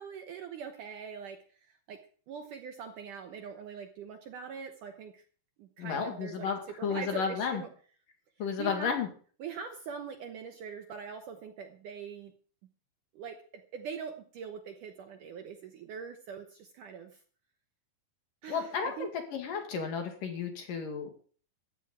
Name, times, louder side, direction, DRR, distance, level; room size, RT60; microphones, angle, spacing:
voice 1, 0.0-2.0 2.3-5.2 5.6-6.5 6.8-7.7 8.4-8.9 9.4-12.3 13.1-17.2 18.4-19.1, right 6 dB, 70° right, 5 dB, 2.1 m, -43 dB
voice 2, 5.8-7.6 8.4-9.1 18.5-21.1, left 6 dB, 60° left, 4 dB, 3.5 m, -33 dB
14.5 x 6.1 x 9.4 m, 0.43 s
omnidirectional pair, 4.8 m